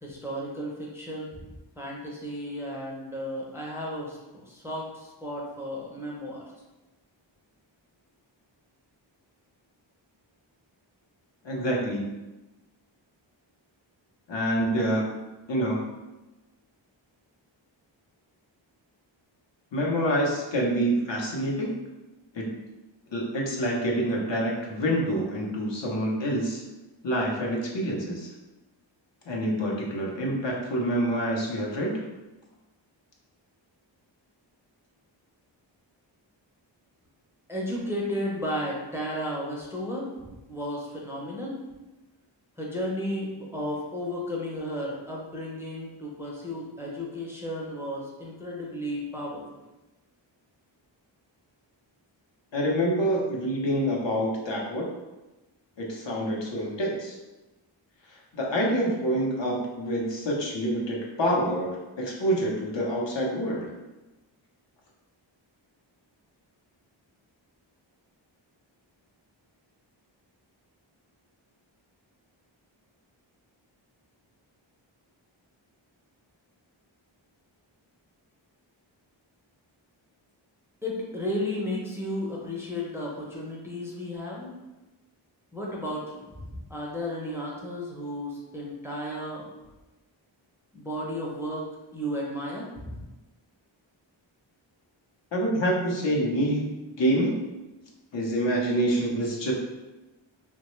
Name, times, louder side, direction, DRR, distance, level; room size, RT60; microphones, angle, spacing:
voice 1, 0.0-6.4 37.5-41.6 42.6-49.4 80.8-84.5 85.5-89.4 90.7-91.7 91.9-93.0, equal, 5° right, -4 dB, 0.5 m, -34 dB
voice 2, 11.4-12.1 14.3-15.1 15.5-15.8 19.7-21.7 22.3-22.6 23.1-26.6 27.0-28.3 29.3-32.0 52.5-54.9 55.8-57.2 58.3-63.7 95.3-97.3 98.1-99.5, right 1 dB, 65° left, -2 dB, 0.7 m, -27 dB
3.0 x 2.2 x 3.0 m, 1.1 s
wide cardioid pair, 105°, 47 cm